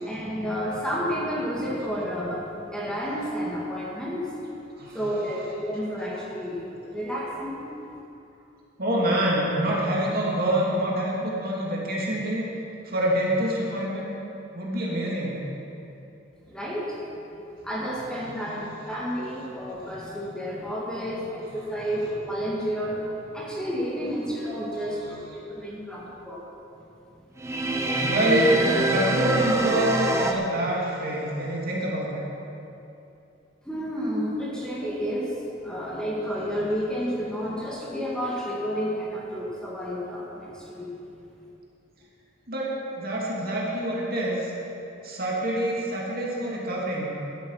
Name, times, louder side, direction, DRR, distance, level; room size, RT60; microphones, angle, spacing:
voice 1, 0.0-4.4 4.9-8.0 16.5-17.0 17.6-26.4 27.9-28.1 33.6-40.9, equal, 5° left, -6 dB, 2.0 m, -31 dB
voice 2, 4.8-5.3 8.8-12.4 12.8-14.2 14.5-15.4 18.3-18.7 24.8-25.3 27.6-32.2 42.5-44.5 45.0-47.1, right 1 dB, 50° right, -4 dB, 2.6 m, -26 dB
sound 1, 27.4-30.3, right 2 dB, 15° right, 0.8 m, -24 dB
12.5 x 11.5 x 5.7 m, 2.8 s
head